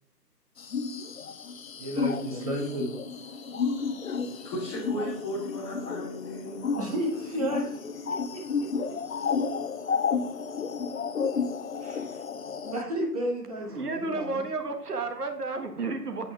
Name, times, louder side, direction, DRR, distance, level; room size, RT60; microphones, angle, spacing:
sound 1, 0.6-12.8, left 5 dB, 55° left, 0.6 m, -32 dB
voice 1, 1.7-2.9 3.3-3.9 4.3-4.5 6.8-7.8 11.8-12.2 12.7-14.4, right 1 dB, 20° right, -2 dB, 1.7 m, -33 dB
voice 2, 4.4-6.7, equal, 15° left, -6 dB, 2.6 m, -35 dB
voice 3, 13.7-16.3, right 3 dB, 65° right, 6 dB, 1.7 m, -32 dB
8.9 x 8.6 x 3.6 m, 0.64 s
figure-of-eight pair, 160°, 49 cm